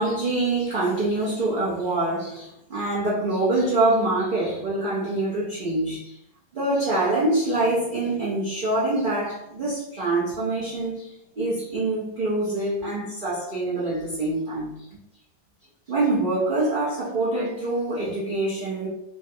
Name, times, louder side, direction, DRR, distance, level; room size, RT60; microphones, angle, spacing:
voice 1, 0.0-6.2 6.5-14.7 15.9-18.9, right 2 dB, 55° right, -9 dB, 0.5 m, -25 dB
3.4 x 2.2 x 2.7 m, 0.79 s
omnidirectional pair, 1.9 m